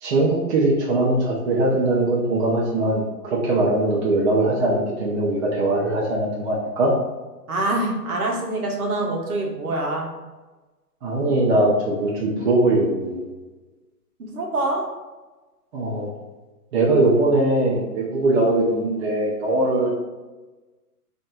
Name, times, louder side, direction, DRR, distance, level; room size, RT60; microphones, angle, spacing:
voice 1, 0.0-6.9 11.0-13.2 15.7-16.1 16.7-19.9, right 2 dB, 45° right, -5 dB, 0.7 m, -21 dB
voice 2, 7.5-10.1 14.2-14.8, right 2 dB, 60° right, -1 dB, 1.0 m, -25 dB
4.0 x 2.7 x 2.2 m, 1.2 s
figure-of-eight pair, 125°, 48 cm